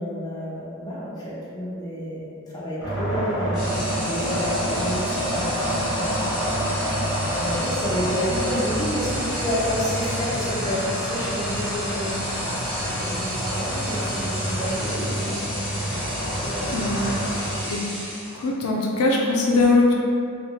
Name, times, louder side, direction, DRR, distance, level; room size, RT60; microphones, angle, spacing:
voice 1, 0.0-6.3 6.6-6.7 7.3-12.2 13.0-15.5 16.4-16.8 17.2-17.7, equal, 15° left, -8 dB, 0.6 m, -30 dB
sound 1, 2.8-17.6, equal, 50° left, 0.8 m, -28 dB
sound 2, 3.5-18.6, equal, ahead, 1.0 m, -33 dB
voice 2, 16.7-17.2 17.7-17.8 18.3-19.9, left 3 dB, 75° left, -1 dB, 0.4 m, -21 dB
3.1 x 2.2 x 2.8 m, 2.4 s
head